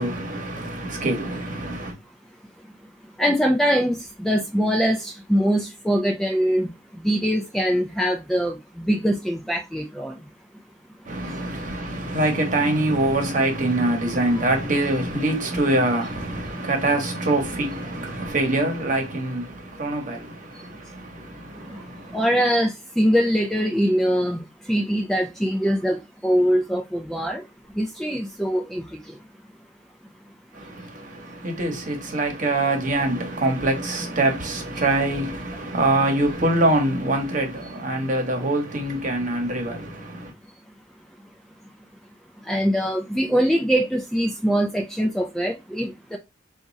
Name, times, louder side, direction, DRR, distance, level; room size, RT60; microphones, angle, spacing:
voice 1, 0.0-1.9 11.0-22.2 30.5-40.3, right 2 dB, 40° right, 1.1 m, -24 dB
voice 2, 3.2-10.3 20.5-20.6 21.5-27.5 27.7-29.2 42.4-46.2, equal, ahead, 0.4 m, -23 dB
3.6 x 2.5 x 4.0 m
head